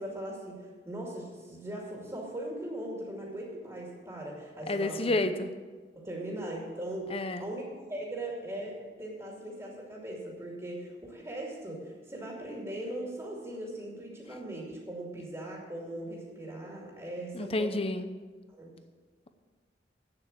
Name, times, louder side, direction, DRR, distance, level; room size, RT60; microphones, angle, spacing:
voice 1, 0.0-5.2 6.0-7.1 7.4-17.7 18.5-18.7, right 1 dB, 20° right, -2 dB, 2.4 m, -39 dB
voice 2, 4.7-5.5 7.1-7.5 17.3-18.1, left 2 dB, 35° left, 9 dB, 0.8 m, -30 dB
8.9 x 7.7 x 8.7 m, 1.4 s
head